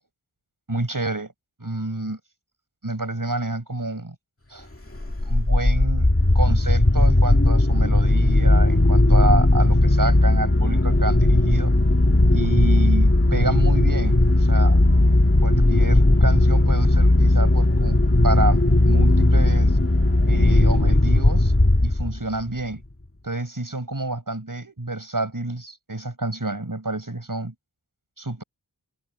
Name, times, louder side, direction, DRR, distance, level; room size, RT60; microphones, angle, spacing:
voice 1, 0.7-1.3 1.6-2.2 2.8-4.2 4.5-4.7 5.3-6.1 6.3-11.7 12.3-14.8 15.4-19.8 20.3-21.5 21.8-22.8 23.2-27.5 28.2-28.4, right 2 dB, 50° right, 7.3 m, -28 dB
sound 1, 5.0-22.3, left 1 dB, 35° left, 2.4 m, -17 dB
wide cardioid pair, 45°, 41 cm